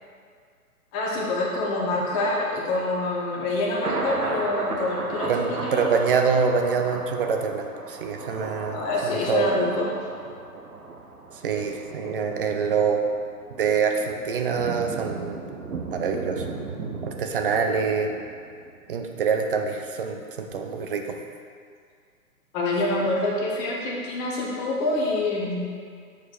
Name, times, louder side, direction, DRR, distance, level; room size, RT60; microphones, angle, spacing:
voice 1, 0.9-6.0 8.7-9.9 22.5-25.7, left 2 dB, 20° left, -3 dB, 0.9 m, -26 dB
Thunder, 1.9-19.0 19.4-19.5, right 3 dB, 75° right, 1.1 m, -36 dB
voice 2, 5.3-9.5 11.3-13.0 13.6-15.4 15.9-16.5 17.0-18.1 18.9-21.2, right 6 dB, 40° right, 4 dB, 0.6 m, -25 dB
7.1 x 4.2 x 4.6 m, 2.1 s
hypercardioid pair, 135°, 45 cm